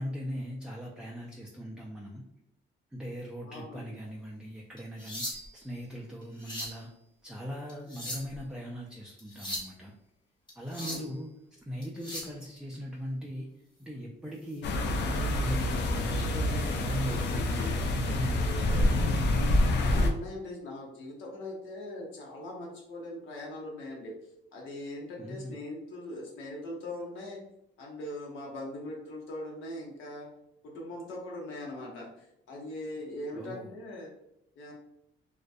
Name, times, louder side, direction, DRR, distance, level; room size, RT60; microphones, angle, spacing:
voice 1, 0.0-2.2 2.9-6.9 7.2-9.9 10.6-11.3 11.7-13.5 13.8-19.0 25.2-25.6 33.3-33.7, equal, 5° right, -2 dB, 0.3 m, -39 dB
voice 2, 3.4-3.9 10.7-11.1 19.8-24.1 24.5-27.4 27.8-30.3 30.6-34.1 34.6-34.7, left 1 dB, 85° left, -2 dB, 0.8 m, -41 dB
sound 1, 4.8-5.7 6.2-6.8 7.7-8.4 9.2-9.7 10.5-11.1 11.8-12.4 14.4-14.6 15.1-15.3 15.8-15.9 17.1-17.7 18.8-19.0, equal, 25° left, 1.0 m, -39 dB
sound 2, 14.6-20.1, left 1 dB, 60° left, 0.4 m, -27 dB
2.3 x 2.1 x 2.5 m, 0.80 s
cardioid pair, 90°, 20 cm